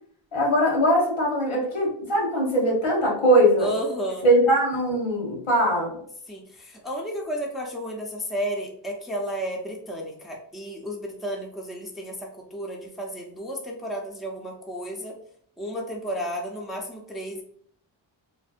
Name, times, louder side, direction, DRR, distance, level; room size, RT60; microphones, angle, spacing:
voice 1, 0.3-3.7 4.2-5.9, right 1 dB, 80° left, -2 dB, 1.1 m, -21 dB
voice 2, 3.6-4.3 6.3-15.1 15.6-17.4, equal, ahead, -1 dB, 0.5 m, -32 dB
2.6 x 2.1 x 2.4 m, 0.62 s
cardioid pair, 55°, 47 cm